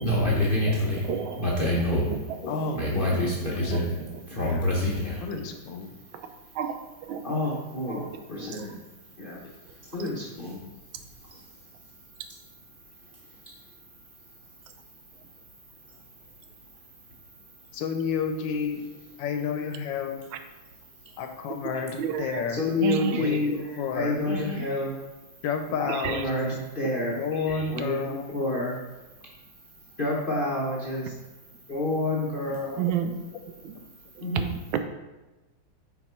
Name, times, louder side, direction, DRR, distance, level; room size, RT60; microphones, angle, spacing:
voice 1, 0.0-5.2 7.2-8.8 9.2-9.4 9.9-10.6 22.5-25.0 25.8-28.8 30.0-31.1 31.7-32.8 34.2-34.6, left 1 dB, 50° left, -4 dB, 0.6 m, -28 dB
voice 2, 1.1-1.8 2.1-2.2 6.6-6.7 7.1-7.2 22.0-22.3 22.8-23.2 26.0-26.1 32.8-33.1 34.7-34.8, right 9 dB, 85° right, 8 dB, 1.5 m, -28 dB
voice 3, 2.5-4.1 4.4-4.7 5.2-6.0 17.7-20.3 21.2-22.7 23.1-24.2 25.4-26.6 27.2-28.3 32.6-33.7, left 6 dB, 75° left, 6 dB, 1.3 m, -32 dB
6.0 x 4.4 x 4.5 m, 1.1 s
omnidirectional pair, 2.2 m